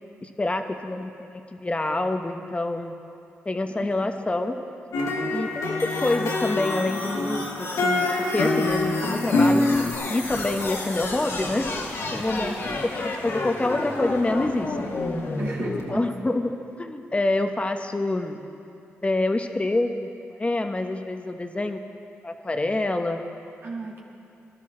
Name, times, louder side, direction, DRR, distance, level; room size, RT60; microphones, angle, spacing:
voice 1, 0.2-2.9 3.4-4.6 5.3-11.7 12.1-12.5 12.8-15.0 15.9-16.5 16.8-18.4 19.0-21.8 22.2-23.2, left 2 dB, 25° left, 6 dB, 1.1 m, -27 dB
voice 2, 3.7-4.0 12.3-12.6 15.4-16.1 23.6-24.0, right 3 dB, 60° right, -3 dB, 2.4 m, -35 dB
sound 1, 4.9-9.9, left 2 dB, 90° left, 1.3 m, -25 dB
sound 2, 5.8-15.8, left 2 dB, 65° left, 1.9 m, -32 dB
20.5 x 12.0 x 3.8 m, 2.7 s
cardioid pair, 60°, 5 cm